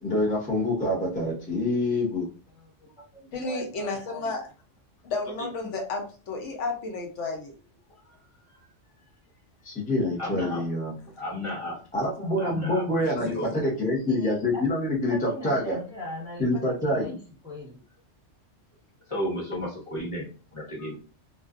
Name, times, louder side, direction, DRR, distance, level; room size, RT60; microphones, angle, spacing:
voice 1, 0.0-2.3 9.6-10.9 11.9-15.8 16.4-17.2, left 1 dB, 10° left, -4 dB, 0.4 m, -26 dB
voice 2, 2.5-4.4 14.1-14.6 15.1-17.2 17.4-17.8, left 1 dB, 5° right, -5 dB, 0.8 m, -40 dB
voice 3, 3.3-4.4 5.0-7.5 13.2-13.3, left 3 dB, 80° left, 1 dB, 1.0 m, -32 dB
voice 4, 5.4-5.7 7.9-8.0 10.2-10.6 11.2-11.8 12.4-12.9 13.2-13.6 19.1-20.9, left 1 dB, 30° left, -5 dB, 1.1 m, -33 dB
2.5 x 2.2 x 2.4 m, 0.36 s
omnidirectional pair, 1.2 m